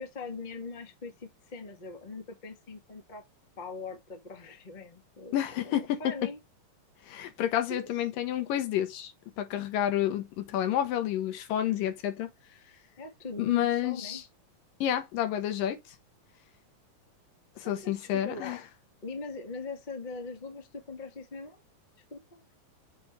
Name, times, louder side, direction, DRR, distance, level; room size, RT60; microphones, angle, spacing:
voice 1, 0.0-3.2 3.6-6.4 7.7-7.9 13.0-14.2 17.6-18.6 19.0-21.6 22.1-22.4, left 3 dB, 35° left, 0.7 m, -41 dB
voice 2, 5.3-6.0 7.1-9.1 9.4-12.3 13.4-14.2 14.8-15.8 17.6-18.6, left 11 dB, 85° left, 2.9 m, -29 dB
7.7 x 3.4 x 4.4 m
omnidirectional pair, 3.8 m